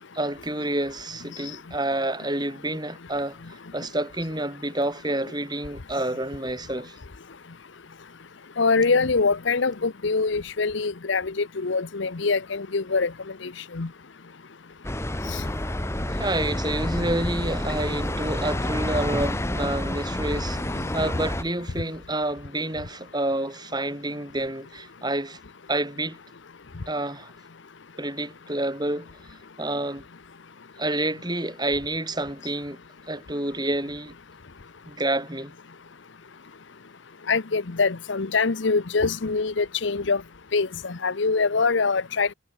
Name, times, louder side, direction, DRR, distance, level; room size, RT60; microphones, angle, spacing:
voice 1, 0.1-3.4 3.7-6.9 16.1-25.4 25.7-26.2 26.9-27.3 28.0-29.1 29.6-30.0 30.8-32.8 33.1-34.1 34.9-35.5, right 1 dB, 20° right, 6.5 m, -28 dB
voice 2, 8.6-13.1 13.7-13.9 37.3-40.2 40.5-42.3, left 4 dB, 65° left, 0.8 m, -24 dB
sound 1, 14.8-21.4, left 1 dB, 15° left, 1.5 m, -28 dB
head